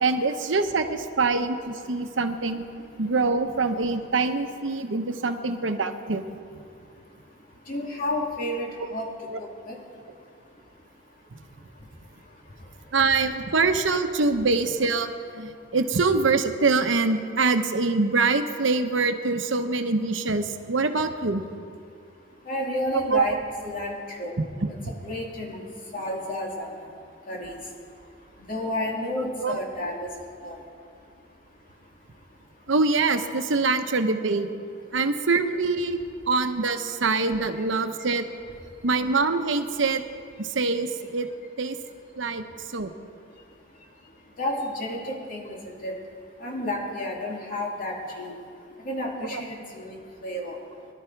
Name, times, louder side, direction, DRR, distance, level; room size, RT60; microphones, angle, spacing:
voice 1, 0.0-2.7 3.0-6.2 9.3-9.4 12.9-21.4 22.9-23.3 24.6-24.7 29.4-29.6 32.7-34.5 34.9-36.0 36.3-38.3 38.8-40.0 40.4-41.3 41.6-41.8 42.2-42.4 42.7-42.9 49.3-49.4, right 3 dB, 80° right, 7 dB, 1.0 m, -24 dB
voice 2, 7.7-9.1 9.7-9.8 22.5-24.3 25.0-25.7 25.9-26.7 27.3-27.6 28.5-30.1 30.4-30.6 44.4-45.9 46.4-48.3 48.8-50.0 50.2-50.5, left 1 dB, 45° left, -1 dB, 2.6 m, -31 dB
22.5 x 12.0 x 4.6 m, 2.3 s
head